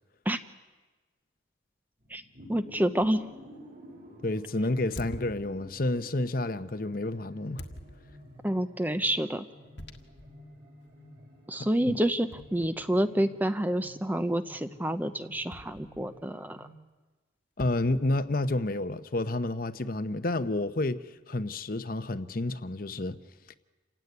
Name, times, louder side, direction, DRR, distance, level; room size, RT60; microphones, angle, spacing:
sound 1, 2.0-16.7, equal, 50° right, 5.7 m, -51 dB
voice 1, 2.5-3.2 8.4-9.5 11.5-16.7, right 1 dB, 10° right, 0.7 m, -28 dB
sound 2, 3.0-3.2 5.0-6.0 7.6-8.4 9.8-10.4 10.9-11.0 12.3-13.2 15.5-16.3 17.6-18.7, left 1 dB, 70° left, 1.6 m, -46 dB
voice 2, 4.2-7.6 11.9-12.0 17.6-23.2, left 2 dB, 50° left, 0.9 m, -30 dB
28.0 x 16.5 x 9.6 m
head